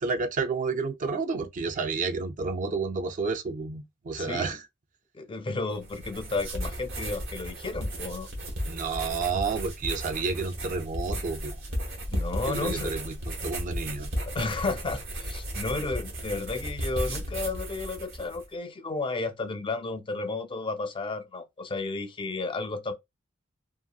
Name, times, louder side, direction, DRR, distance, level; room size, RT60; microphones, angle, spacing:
voice 1, 0.0-4.7 8.7-11.6 12.5-14.1, right 4 dB, 40° right, 0.4 m, -30 dB
voice 2, 4.2-4.6 5.1-8.3 12.1-13.0 14.3-22.9, left 3 dB, 25° left, 0.4 m, -32 dB
sound 1, 5.7-18.4, equal, 70° right, 1.1 m, -34 dB
2.9 x 2.6 x 2.3 m
head